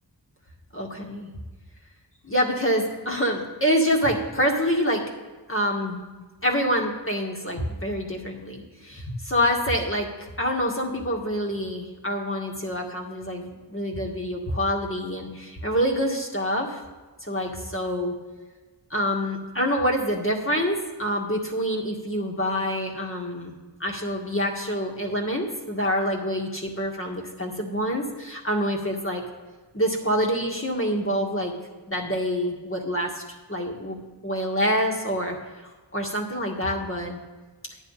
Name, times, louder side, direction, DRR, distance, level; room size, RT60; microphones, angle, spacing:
voice 1, 0.7-1.3 2.2-5.0 5.5-6.1 6.4-16.8 17.2-18.1 18.9-23.5 23.8-29.2 29.7-31.5 31.9-33.2 33.5-34.0 34.2-35.4 35.9-37.2, equal, 30° left, 0 dB, 1.9 m, -26 dB
10.5 x 9.8 x 4.2 m, 1.3 s
wide cardioid pair, 55°, 43 cm